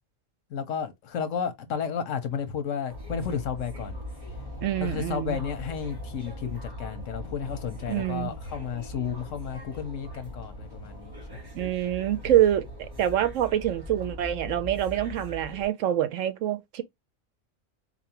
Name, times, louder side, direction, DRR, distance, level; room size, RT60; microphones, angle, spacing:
voice 1, 0.5-4.0 4.8-11.5, left 7 dB, 80° left, 1.2 m, -32 dB
sound 1, 2.9-15.7, left 1 dB, 20° right, 1.1 m, -40 dB
voice 2, 4.6-5.4 7.9-8.3 11.5-16.8, right 12 dB, 80° right, 1.0 m, -26 dB
4.2 x 2.7 x 2.9 m
omnidirectional pair, 1.3 m